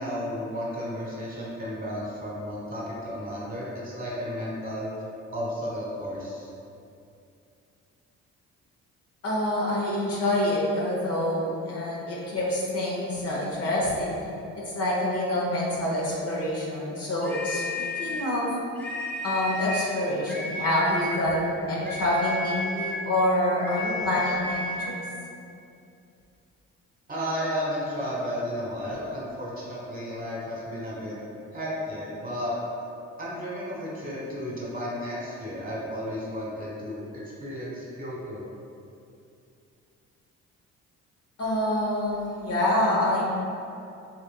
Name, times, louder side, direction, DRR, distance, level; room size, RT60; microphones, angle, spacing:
voice 1, 0.0-4.9 5.3-6.5 27.1-31.2 31.5-32.5 33.2-38.4, equal, 25° right, -6 dB, 1.2 m, -33 dB
voice 2, 9.2-14.1 14.5-18.5 19.2-25.0 41.4-43.2, left 1 dB, 45° left, -5 dB, 0.8 m, -26 dB
sound 1, 17.2-18.3 18.7-20.0 20.3-21.2 21.8-23.1 23.6-25.0, left 2 dB, 5° left, 0.7 m, -32 dB
4.2 x 2.5 x 2.2 m, 2.6 s
hypercardioid pair, 50°, 34 cm